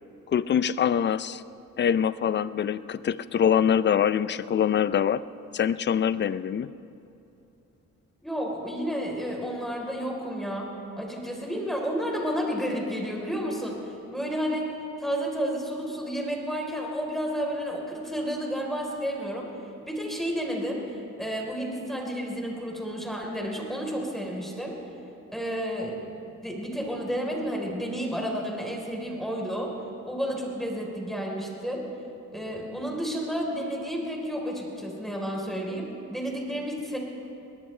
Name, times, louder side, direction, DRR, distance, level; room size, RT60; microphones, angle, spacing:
voice 1, 0.3-1.4 1.8-5.2 5.5-6.7, left 8 dB, 35° left, 16 dB, 0.5 m, -24 dB
voice 2, 8.2-10.7 11.0-13.8 14.1-14.7 15.0-19.5 19.8-20.9 21.2-24.8 25.3-26.0 26.4-29.7 30.1-31.9 32.3-37.0, equal, ahead, -1 dB, 3.8 m, -31 dB
21.5 x 19.0 x 3.3 m, 2.8 s
cardioid pair, 90°, 30 cm